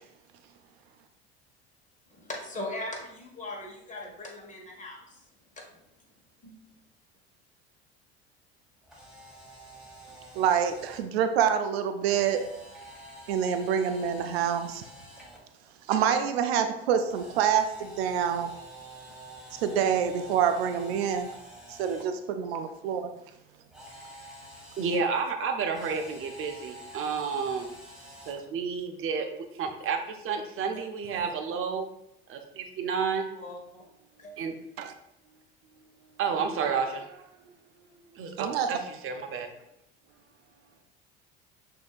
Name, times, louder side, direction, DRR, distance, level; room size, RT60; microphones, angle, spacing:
voice 1, 2.1-5.2 5.6-5.7 6.4-6.6 30.7-30.8 31.1-31.6 33.3-33.8 34.2-34.3, left 1 dB, 25° left, -1 dB, 1.4 m, -40 dB
Camera, 8.8-11.0 12.1-15.4 17.1-22.0 23.7-25.0 25.7-28.4, right 1 dB, ahead, 1.5 m, -47 dB
voice 2, 10.3-12.4 13.3-14.8 15.9-18.5 19.5-21.3 21.7-23.1 34.8-34.9 38.4-38.7, right 8 dB, 80° right, 7 dB, 0.5 m, -26 dB
voice 3, 24.8-27.7 28.3-31.9 32.3-33.3 34.4-34.6 36.2-37.5 38.1-39.5, right 5 dB, 45° right, 5 dB, 0.8 m, -31 dB
6.1 x 2.8 x 2.4 m, 0.81 s
hypercardioid pair, 75°, 31 cm